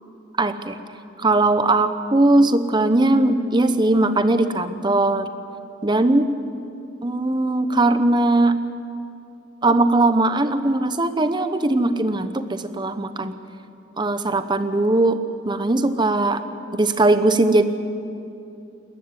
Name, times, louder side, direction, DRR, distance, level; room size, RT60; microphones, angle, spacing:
voice 1, 0.4-0.8 1.2-5.3 5.8-6.3 7.0-8.6 9.6-13.4 14.0-16.4 16.7-17.6, right 2 dB, 25° right, 10 dB, 0.8 m, -19 dB
19.5 x 14.5 x 9.7 m, 2.7 s
head